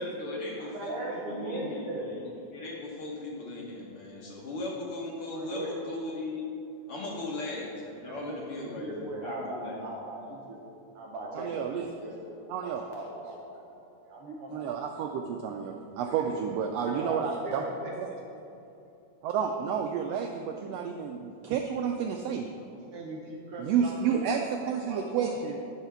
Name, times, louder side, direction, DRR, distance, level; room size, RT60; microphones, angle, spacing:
voice 1, 0.0-6.5 6.9-9.9, left 2 dB, 55° left, -3 dB, 1.8 m, -38 dB
voice 2, 0.6-2.1 5.3-5.8 7.0-7.1 8.0-10.6 10.9-13.4 13.8-14.9 16.0-16.4 16.7-18.2 22.7-24.6 24.9-25.5, right 1 dB, 65° right, -2 dB, 1.5 m, -39 dB
voice 3, 11.3-11.9 12.5-12.8 14.5-17.6 18.0-18.1 19.2-22.5 23.6-25.6, right 7 dB, 90° right, 4 dB, 1.4 m, -30 dB
11.0 x 4.8 x 5.7 m, 2.7 s
omnidirectional pair, 3.4 m